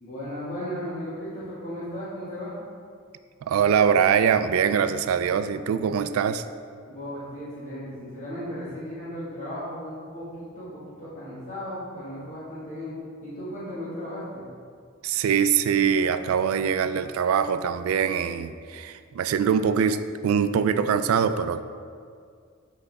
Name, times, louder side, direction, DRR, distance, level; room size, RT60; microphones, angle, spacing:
voice 1, 0.0-2.6 6.9-12.9 13.2-14.4, equal, 35° left, -11 dB, 1.7 m, -36 dB
voice 2, 3.5-6.4 15.0-21.6, right 7 dB, 90° right, 13 dB, 0.3 m, -23 dB
7.8 x 5.0 x 3.5 m, 2.2 s
head